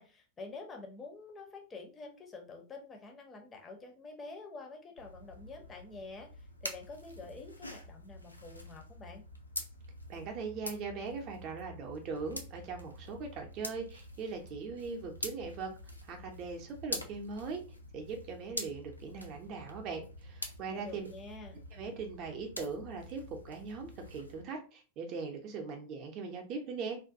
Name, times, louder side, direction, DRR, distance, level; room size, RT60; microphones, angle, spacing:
voice 1, 0.0-9.2 20.7-21.6, left 3 dB, 20° left, 3 dB, 0.5 m, -48 dB
sound 1, 5.0-24.4, left 1 dB, 85° left, 0.3 m, -46 dB
voice 2, 10.1-15.7 16.0-17.6 17.9-21.1 21.7-27.0, right 4 dB, 35° right, 2 dB, 0.5 m, -40 dB
2.4 x 2.2 x 2.5 m, 0.34 s
figure-of-eight pair, 90°, 0 cm